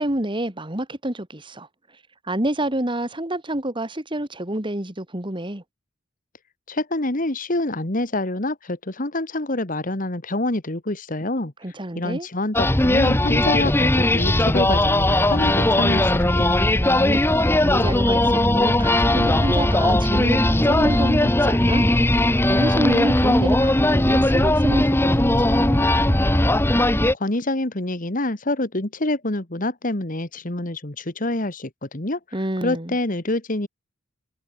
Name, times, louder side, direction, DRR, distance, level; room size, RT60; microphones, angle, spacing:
voice 1, 0.0-1.7 2.3-5.6 11.6-12.3 16.9-21.8 22.5-25.9 32.3-32.9, right 1 dB, 25° right, 2.4 m, -28 dB
voice 2, 6.7-11.5 11.9-16.6 27.2-32.2 32.6-33.7, left 2 dB, 45° left, 2.1 m, -26 dB
sound 1, 12.5-27.1, left 1 dB, 10° left, 1.0 m, -18 dB
head